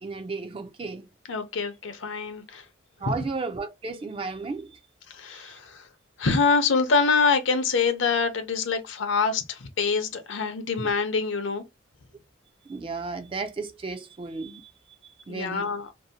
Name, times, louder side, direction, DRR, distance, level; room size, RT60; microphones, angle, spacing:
voice 1, 0.0-1.1 3.0-4.8 5.3-5.5 10.8-10.9 12.6-14.7 15.0-15.7, right 3 dB, 25° right, 0.3 m, -34 dB
voice 2, 1.3-2.6 3.0-3.1 5.1-5.9 6.2-11.6 15.3-15.9, left 4 dB, 65° left, 0.6 m, -25 dB
2.6 x 2.0 x 2.7 m
head